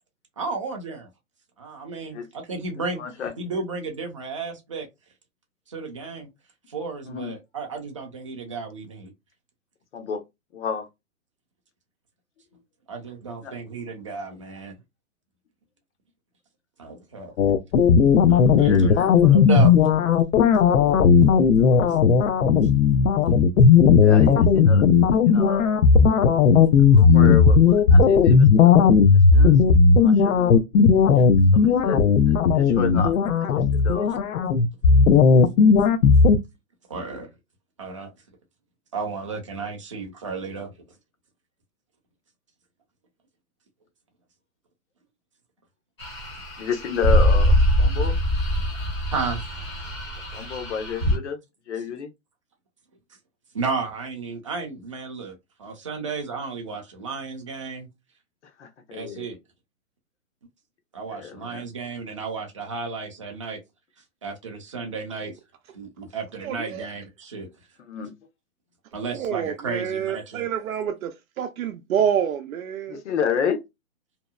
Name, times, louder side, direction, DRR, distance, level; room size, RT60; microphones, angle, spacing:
voice 1, 0.4-1.1 1.6-3.0 3.4-4.9 5.7-6.3 6.7-9.1 12.9-14.7 16.8-17.3 18.3-18.9 19.2-19.7 36.9-37.3 37.8-38.1 38.9-40.7 49.1-49.4 53.5-57.9 58.9-59.4 60.9-63.6 64.2-65.3 65.7-67.5 68.9-70.5, right 4 dB, 25° right, 0.4 m, -33 dB
voice 2, 3.0-3.3 7.0-7.3 9.9-10.2 10.5-10.9 13.4-13.6 18.5-19.1 21.6-21.9 24.0-24.9 25.2-25.8 26.9-28.8 29.3-29.6 30.0-30.6 31.5-33.2 33.4-34.1 46.6-48.1 50.3-51.4 51.7-52.1 58.6-59.3 61.1-61.7 67.8-68.1 72.9-73.6, left 7 dB, 55° left, 0.8 m, -31 dB
sound 1, 17.4-36.4, left 5 dB, 85° left, 0.6 m, -16 dB
sound 2, 46.0-51.2, equal, 20° left, 0.6 m, -23 dB
voice 3, 66.4-66.9 69.1-73.0, right 8 dB, 75° right, 0.6 m, -27 dB
2.7 x 2.0 x 2.2 m
hypercardioid pair, 160°, 41 cm